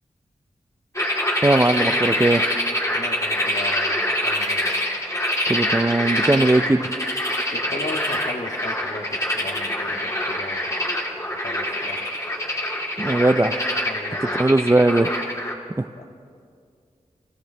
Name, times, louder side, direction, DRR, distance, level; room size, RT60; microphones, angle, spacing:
sound 1, 0.9-15.5, left 1 dB, 25° left, 2.5 m, -25 dB
voice 1, 1.4-2.4 5.5-6.9 13.0-13.6 14.2-15.1 15.8-15.9, right 2 dB, 20° right, 11 dB, 0.5 m, -19 dB
voice 2, 2.9-4.8 7.5-10.9 11.3-12.2 13.8-14.4 16.0-16.1, left 2 dB, 60° left, 2 dB, 1.8 m, -36 dB
25.5 x 15.0 x 3.4 m, 2.3 s
cardioid pair, 55°, 13 cm